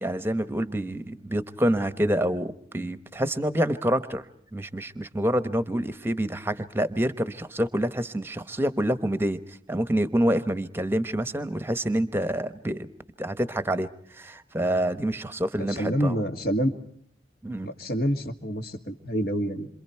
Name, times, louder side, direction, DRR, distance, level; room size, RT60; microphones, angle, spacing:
voice 1, 0.0-4.2 4.5-9.4 9.7-12.9 13.2-13.9 14.1-16.2 17.4-17.7, right 1 dB, 10° right, 12 dB, 1.0 m, -27 dB
voice 2, 15.6-16.7 17.6-19.7, equal, 55° left, 6 dB, 2.0 m, -27 dB
28.0 x 26.5 x 4.5 m, 0.63 s
head